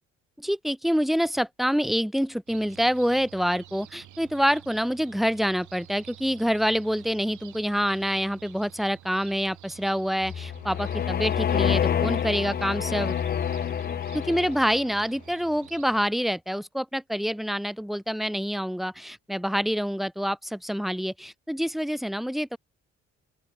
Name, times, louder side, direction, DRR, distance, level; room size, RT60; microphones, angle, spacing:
voice 1, 0.4-13.2 14.1-22.6, equal, ahead, 1.7 m, -26 dB
sound 1, 2.5-16.1, right 12 dB, 75° right, 7.8 m, -49 dB
sound 2, 10.2-14.9, left 8 dB, 30° left, 0.4 m, -27 dB
open air
cardioid pair, 90°, 30 cm